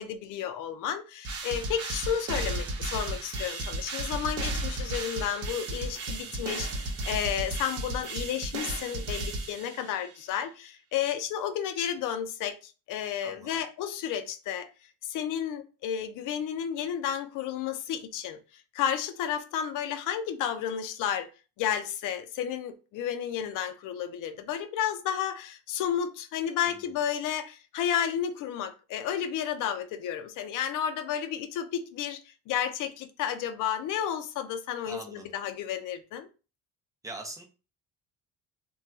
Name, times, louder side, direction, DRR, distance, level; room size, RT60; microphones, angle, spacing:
voice 1, 0.0-14.7 15.0-18.4 18.7-21.3 21.6-36.3, left 9 dB, 60° left, 0.5 m, -32 dB
sound 1, 1.2-10.1, right 2 dB, 40° right, 0.9 m, -34 dB
voice 2, 6.1-6.5 13.2-13.6 26.6-26.8 34.9-35.3 37.0-37.4, right 2 dB, 10° right, 0.6 m, -43 dB
2.3 x 2.2 x 3.9 m
cardioid pair, 130°, 36 cm